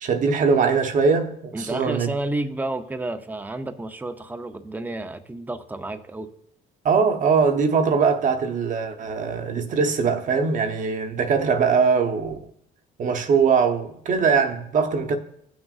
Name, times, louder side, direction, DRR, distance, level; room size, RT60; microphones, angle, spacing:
voice 1, 0.0-2.1 6.8-12.4 13.0-15.2, right 5 dB, 50° right, 0.9 m, -21 dB
voice 2, 1.5-6.3, right 2 dB, 10° right, 0.6 m, -31 dB
16.5 x 6.1 x 2.4 m
cardioid pair, 110°, 17 cm